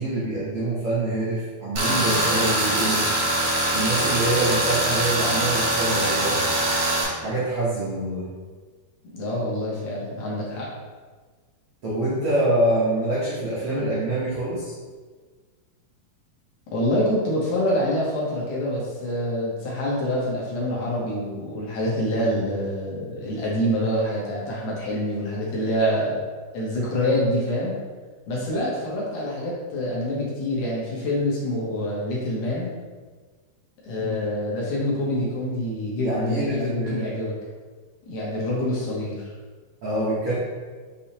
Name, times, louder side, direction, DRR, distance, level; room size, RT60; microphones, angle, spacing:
voice 1, 0.0-3.1 3.7-6.5 7.2-8.3 11.8-14.7 34.0-34.2 36.0-37.1 39.8-40.3, right 1 dB, 85° right, -9 dB, 1.2 m, -25 dB
Tools, 1.8-7.0, right 1 dB, 65° right, 1.4 m, -23 dB
voice 2, 9.1-10.7 16.7-26.2 26.5-27.8 28.3-32.7 33.8-37.3 38.1-39.3, left 1 dB, 65° left, -5 dB, 1.8 m, -26 dB
6.5 x 2.7 x 2.8 m, 1.4 s
omnidirectional pair, 4.0 m